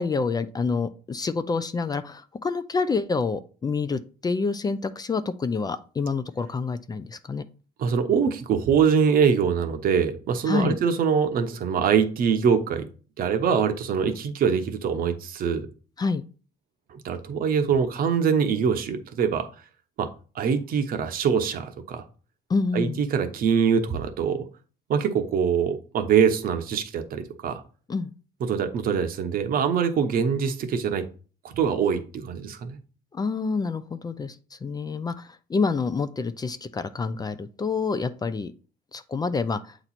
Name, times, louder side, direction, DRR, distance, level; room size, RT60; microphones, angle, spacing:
voice 1, 0.0-7.4 10.5-10.7 16.0-16.2 22.5-23.0 27.9-28.1 33.1-34.4 34.6-38.5 38.9-39.6, left 4 dB, 25° left, 12 dB, 0.4 m, -27 dB
voice 2, 7.8-12.9 13.2-15.7 16.9-19.5 20.0-20.1 20.3-22.0 22.7-24.5 24.9-27.6 28.4-31.0 31.4-32.8, right 6 dB, 60° right, 8 dB, 0.9 m, -23 dB
7.7 x 3.0 x 4.1 m, 0.38 s
cardioid pair, 110°, 17 cm